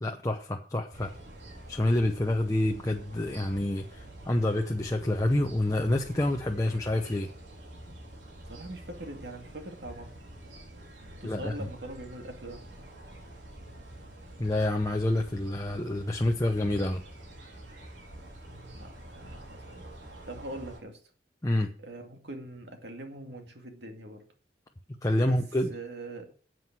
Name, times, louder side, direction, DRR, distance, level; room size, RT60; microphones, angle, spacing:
voice 1, 0.0-1.1 1.7-7.3 11.2-11.7 14.4-17.0 21.4-21.7 25.0-25.7, left 1 dB, 20° left, 0.7 m, -28 dB
sound 1, 0.9-20.8, right 1 dB, 85° right, 3.8 m, -47 dB
voice 2, 8.4-10.2 11.2-12.6 18.5-21.0 21.8-24.2 25.2-25.4 25.7-26.3, right 1 dB, 70° right, 2.3 m, -43 dB
9.5 x 7.9 x 6.1 m
head